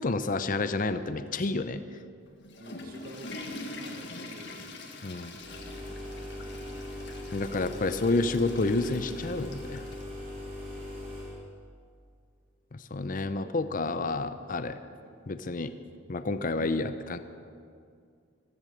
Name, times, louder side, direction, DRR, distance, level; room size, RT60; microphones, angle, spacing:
voice 1, 0.0-1.8 5.0-5.4 7.3-9.8 12.7-14.8 15.3-15.7 16.1-17.2, left 3 dB, 40° left, 11 dB, 0.6 m, -29 dB
Water / Toilet flush, 2.3-10.1, left 2 dB, 60° left, 1.7 m, -44 dB
voice 2, 2.6-5.3 10.6-11.1, right 1 dB, 45° right, 2 dB, 1.5 m, -50 dB
sound 1, 5.4-11.4, left 1 dB, 30° right, 4.3 m, -40 dB
14.5 x 14.0 x 6.5 m, 2.3 s
head